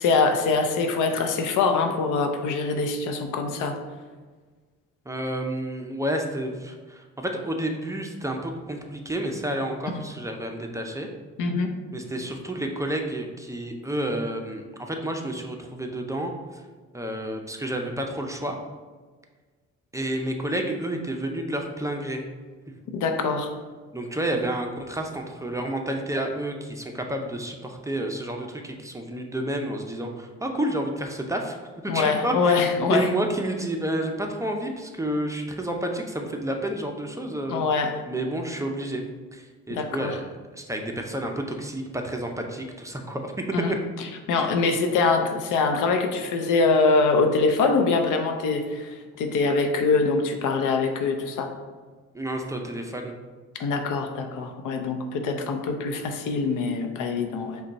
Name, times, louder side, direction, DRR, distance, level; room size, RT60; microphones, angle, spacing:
voice 1, 0.0-3.8 11.4-11.7 22.9-23.5 31.9-33.1 37.5-37.9 39.7-40.2 43.5-43.7 44.3-51.5 53.6-57.6, left 4 dB, 85° left, 5 dB, 0.6 m, -24 dB
voice 2, 5.1-11.1 11.9-16.3 16.9-18.6 19.9-22.2 23.9-31.6 31.9-32.6 32.9-37.6 38.1-39.0 39.3-40.2 40.6-43.5 52.1-53.2, right 1 dB, 10° right, 2 dB, 0.5 m, -30 dB
5.1 x 2.3 x 4.0 m, 1.4 s
cardioid pair, 90°, 30 cm